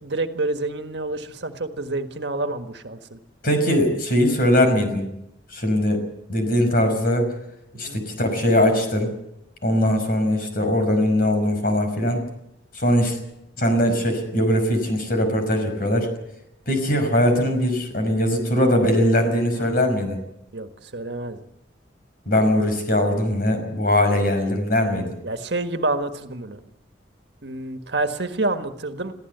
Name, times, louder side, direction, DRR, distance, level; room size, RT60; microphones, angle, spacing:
voice 1, 0.0-3.2 7.7-8.0 19.6-19.7 20.5-21.4 25.2-26.6 27.4-29.1, right 2 dB, 65° right, 7 dB, 1.6 m, -28 dB
voice 2, 3.4-5.1 5.5-6.0 6.3-7.3 7.7-9.1 9.6-12.3 12.7-13.2 13.6-16.1 16.7-20.2 22.3-25.2, left 1 dB, 55° left, 6 dB, 5.6 m, -21 dB
23.0 x 15.5 x 8.1 m, 0.83 s
head